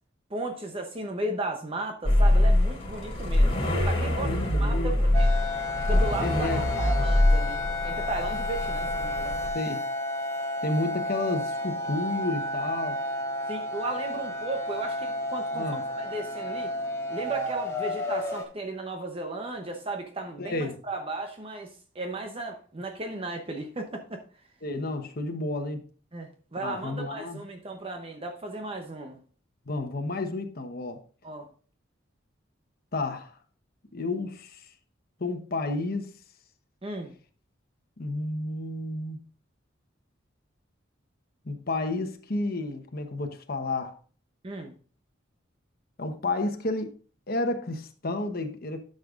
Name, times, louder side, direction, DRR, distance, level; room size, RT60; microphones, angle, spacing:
voice 1, 0.3-3.6 3.8-4.3 4.6-5.3 5.9-9.4 13.5-16.7 17.1-24.2 26.1-29.2 31.2-31.5 36.8-37.1 44.4-44.7, right 2 dB, 30° right, 0.8 m, -35 dB
sound 1, 2.0-9.5, left 1 dB, 30° left, 2.8 m, -24 dB
voice 2, 3.5-4.9 6.2-6.6 9.5-9.8 10.6-13.0 15.5-15.8 20.4-20.8 24.6-25.9 26.6-27.4 29.7-31.0 32.9-33.4 33.9-34.7 35.2-36.1 38.0-39.2 41.4-43.9 46.0-46.9 47.3-48.8, left 2 dB, 50° left, 1.0 m, -31 dB
sound 2, 5.1-18.4, left 1 dB, 15° left, 1.5 m, -32 dB
12.0 x 6.5 x 2.5 m
head